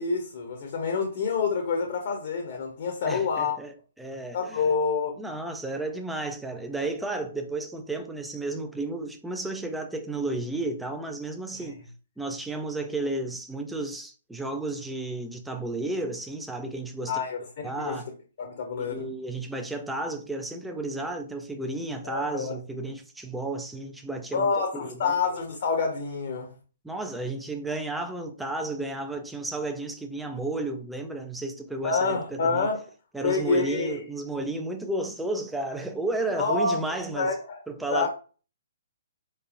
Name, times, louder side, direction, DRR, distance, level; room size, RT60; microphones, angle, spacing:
voice 1, 0.0-3.6 4.3-5.2 17.1-17.4 17.8-18.0 18.4-19.0 22.0-22.5 24.3-26.5 31.8-32.8 33.2-34.0 36.4-36.8 37.2-37.6 37.9-38.1, left 4 dB, 45° left, 0.9 m, -27 dB
voice 2, 3.1-4.6 5.2-11.8 12.2-17.2 17.6-18.1 18.8-24.9 26.8-32.7 33.1-37.3 37.7-38.1, right 2 dB, 5° right, 0.4 m, -33 dB
4.6 x 3.3 x 2.5 m
figure-of-eight pair, 125°, 0 cm